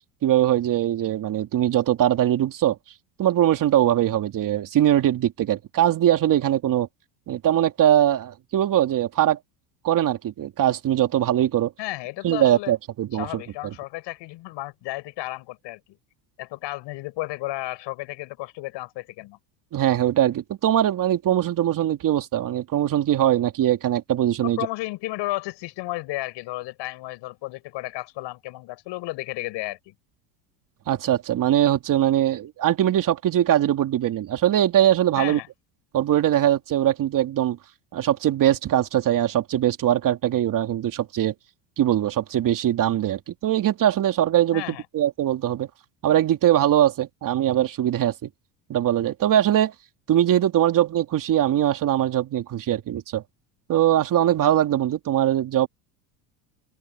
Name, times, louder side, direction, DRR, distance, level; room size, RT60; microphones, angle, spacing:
voice 1, 0.2-2.8 3.2-6.9 7.3-9.4 9.8-11.7 12.2-13.4 19.7-24.6 30.9-35.4 35.9-37.6 37.9-41.3 41.8-45.7 46.0-48.3 48.7-49.7 50.1-53.2 53.7-55.7, right 11 dB, 40° right, 3.0 m, -21 dB
voice 2, 11.8-12.7 13.1-16.0 16.4-19.4 24.4-29.9 35.2-35.5 44.5-44.8, left 19 dB, 60° left, 7.3 m, -33 dB
open air
supercardioid pair, 120°, 49 cm